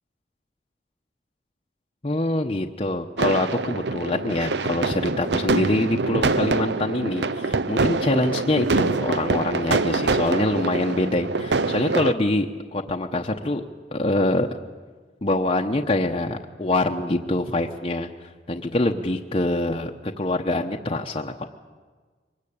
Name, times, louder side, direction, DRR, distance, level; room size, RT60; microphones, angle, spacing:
voice 1, 2.0-13.6 13.9-14.6 15.2-21.5, left 2 dB, 30° left, 2 dB, 0.9 m, -25 dB
sound 1, 3.2-12.1, right 3 dB, 75° right, 0.8 m, -25 dB
24.0 x 20.0 x 8.7 m, 1.4 s
head